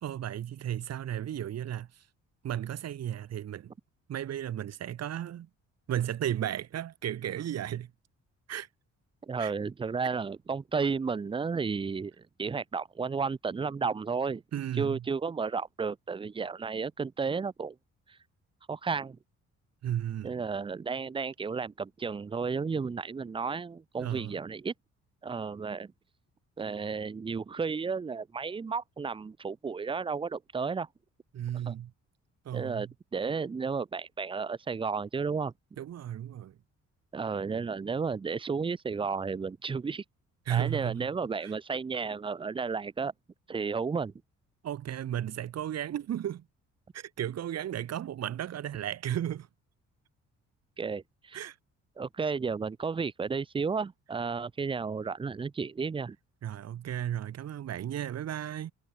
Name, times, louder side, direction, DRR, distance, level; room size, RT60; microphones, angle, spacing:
voice 1, 0.0-2.0 2.4-3.7 4.1-5.5 5.9-7.9 8.5-8.7 9.4-9.5 14.5-15.0 19.8-20.4 24.0-24.3 31.3-31.9 32.4-32.9 35.8-36.6 40.5-41.1 41.4-41.5 44.6-46.4 46.9-49.5 51.3-51.6 56.4-58.7, right 11 dB, 60° right, 1.2 m, -34 dB
voice 2, 9.3-12.1 12.4-14.4 14.8-17.8 18.7-19.2 20.2-24.7 25.2-25.9 26.6-30.9 31.7-31.8 32.5-35.8 37.1-40.0 40.5-43.1 43.5-44.1 50.8-51.4 52.0-56.2, right 5 dB, 20° right, 0.4 m, -33 dB
cardioid pair, 90°, 30 cm